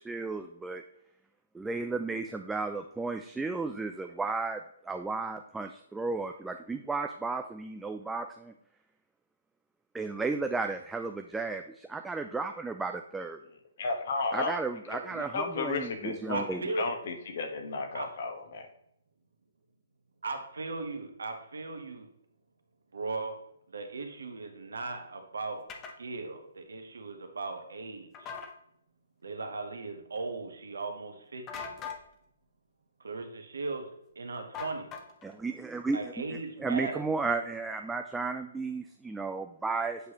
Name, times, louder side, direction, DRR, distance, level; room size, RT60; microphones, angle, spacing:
voice 1, 0.1-0.8 1.5-4.6 4.9-8.5 9.9-13.4 14.3-16.6 35.2-36.0 36.6-40.0, right 3 dB, 5° right, 5 dB, 0.3 m, -33 dB
voice 2, 13.4-18.7, left 4 dB, 55° left, 4 dB, 1.2 m, -34 dB
voice 3, 16.3-16.9 17.9-18.1 20.2-22.1 22.9-23.4 23.7-25.6 26.0-28.3 29.2-31.6 33.0-33.9 34.1-34.9 35.9-37.0, right 3 dB, 70° right, 5 dB, 1.2 m, -37 dB
sound 1, 25.7-26.0 28.1-28.5 31.5-32.0 34.5-35.3, left 6 dB, 20° left, 0.8 m, -40 dB
8.1 x 4.7 x 2.9 m, 0.75 s
figure-of-eight pair, 130°, 0 cm